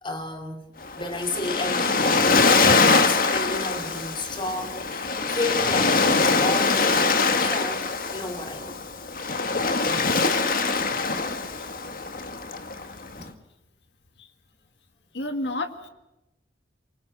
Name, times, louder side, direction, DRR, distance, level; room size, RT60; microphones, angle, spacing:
voice 1, 0.0-0.7 0.9-7.9 8.1-8.8 13.2-13.4, left 2 dB, 25° left, 5 dB, 3.2 m, -33 dB
Waves surf, 0.8-13.2, left 4 dB, 50° left, 1.7 m, -23 dB
voice 2, 15.1-15.9, left 2 dB, 75° left, 7 dB, 2.1 m, -30 dB
26.0 x 23.5 x 6.5 m, 0.95 s
head